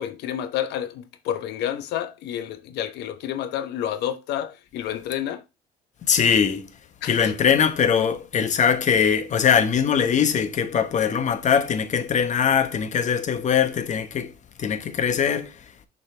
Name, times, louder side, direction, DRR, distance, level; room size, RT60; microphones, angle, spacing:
voice 1, 0.0-5.4 7.0-7.3, left 10 dB, 80° left, 1.1 m, -29 dB
voice 2, 6.0-6.7 7.1-15.7, left 7 dB, 45° left, 1.2 m, -22 dB
6.8 x 5.5 x 3.4 m
cardioid pair, 110°, 17 cm